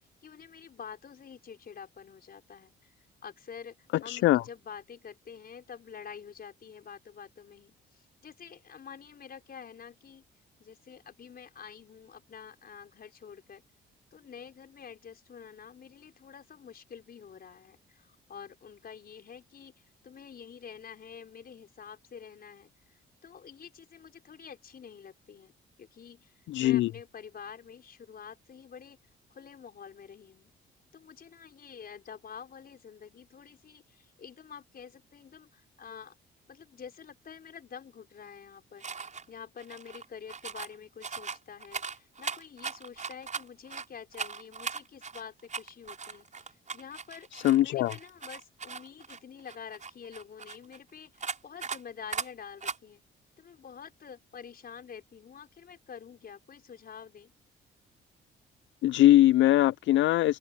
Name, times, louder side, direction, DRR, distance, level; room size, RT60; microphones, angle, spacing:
voice 1, 0.2-2.9 3.2-10.2 10.6-13.6 14.1-19.7 20.0-25.5 25.8-29.0 29.3-30.5 30.9-36.2 36.5-38.9 39.3-47.3 47.6-53.0 53.4-57.3, left 7 dB, 50° left, 5.2 m, -48 dB
voice 2, 4.1-4.4 26.5-26.9 47.3-47.9 58.8-60.4, left 14 dB, 70° left, 0.4 m, -22 dB
sound 1, 38.8-39.2 39.6-40.7 41.0-43.9 44.1-47.6 47.9-50.8 51.2-51.8 52.1-52.3 52.6-52.8, right 5 dB, 40° right, 6.9 m, -38 dB
open air
cardioid pair, 90°, 20 cm